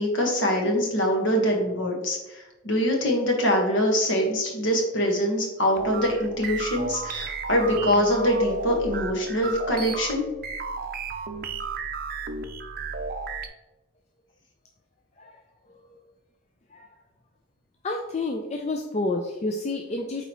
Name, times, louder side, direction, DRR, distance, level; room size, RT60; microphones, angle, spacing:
voice 1, 0.0-10.2, equal, 60° left, 1 dB, 1.5 m, -24 dB
sound 1, 5.8-13.5, right 4 dB, 45° right, 0.5 m, -33 dB
voice 2, 17.8-20.2, left 2 dB, 30° left, 3 dB, 0.4 m, -29 dB
8.6 x 4.1 x 3.0 m, 1.0 s
head